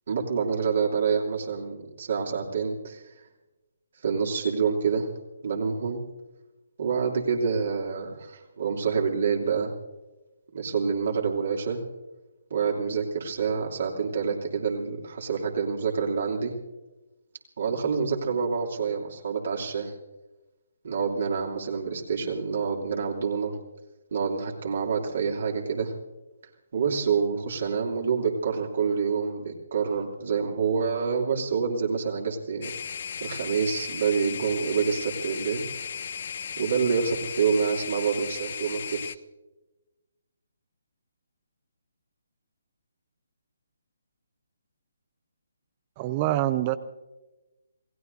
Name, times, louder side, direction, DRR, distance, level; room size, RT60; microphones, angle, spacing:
voice 1, 0.1-3.1 4.0-5.1 5.4-6.0 6.8-9.7 10.5-11.8 12.5-16.5 17.6-19.9 20.8-23.6 24.1-25.9 26.7-32.7 33.2-35.7 36.6-39.2, right 6 dB, 55° right, 0 dB, 2.7 m, -27 dB
sound 1, 32.6-39.1, left 7 dB, 50° left, 0.6 m, -36 dB
voice 2, 46.0-46.8, right 14 dB, 30° right, 13 dB, 0.6 m, -25 dB
28.0 x 18.0 x 2.7 m, 1.1 s
figure-of-eight pair, 140°, 0 cm